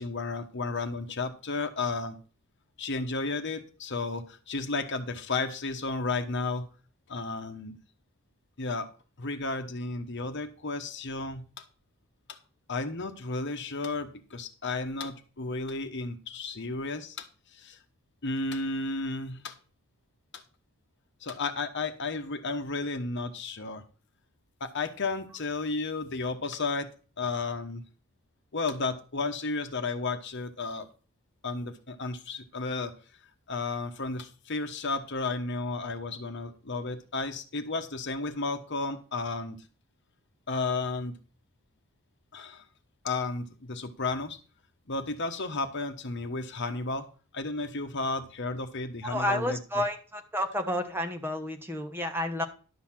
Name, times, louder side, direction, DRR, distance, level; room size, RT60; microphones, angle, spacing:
voice 1, 0.0-2.2 2.8-6.7 7.1-7.8 8.6-8.9 9.2-11.5 12.3-12.4 12.7-17.8 18.2-19.6 20.3-20.4 21.2-23.8 24.6-27.8 28.5-30.9 31.4-32.9 33.5-39.6 40.5-41.2 42.3-42.6 43.0-44.4 44.9-47.1 47.3-49.6, left 3 dB, 55° left, 8 dB, 1.1 m, -33 dB
voice 2, 49.0-52.4, left 1 dB, 10° right, 5 dB, 1.1 m, -30 dB
11.5 x 4.1 x 7.4 m, 0.37 s
head